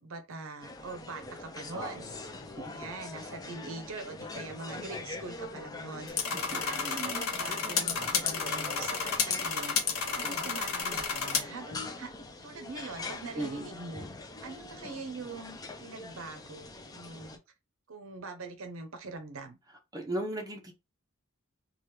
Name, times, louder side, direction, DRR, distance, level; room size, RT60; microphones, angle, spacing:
voice 1, 0.0-2.1 2.6-9.8 10.1-12.1 12.4-14.1 14.4-17.4 17.9-19.6, right 3 dB, 70° right, 0.6 m, -43 dB
sound 1, 0.6-17.4, left 2 dB, 20° left, 0.5 m, -43 dB
voice 2, 1.7-2.3 2.6-2.7 6.3-6.6 13.4-13.7 19.9-20.7, right 1 dB, 20° right, 0.8 m, -36 dB
sound 2, 6.1-11.4, left 6 dB, 90° left, 0.8 m, -31 dB
2.9 x 2.3 x 3.3 m
head